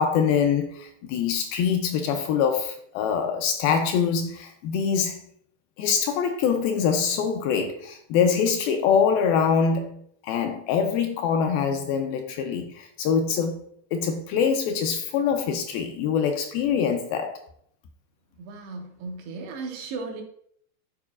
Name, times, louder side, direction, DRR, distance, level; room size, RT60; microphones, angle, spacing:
voice 1, 0.0-5.3 5.8-13.6 13.9-17.4, left 6 dB, 80° left, 2.2 m, -24 dB
voice 2, 18.4-20.2, right 4 dB, 85° right, 3.2 m, -36 dB
11.5 x 4.7 x 2.4 m
omnidirectional pair, 4.6 m